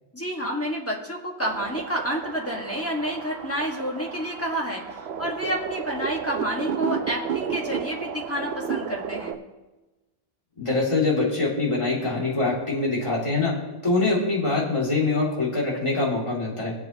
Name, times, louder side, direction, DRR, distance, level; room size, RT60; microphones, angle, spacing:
voice 1, 0.1-9.4, equal, 15° left, -1 dB, 1.7 m, -29 dB
sound 1, 1.4-9.3, right 7 dB, 90° right, 0.9 m, -32 dB
voice 2, 10.6-13.5 13.8-16.7, left 3 dB, 30° left, -5 dB, 2.8 m, -24 dB
21.5 x 7.7 x 3.0 m, 1.1 s
omnidirectional pair, 1.0 m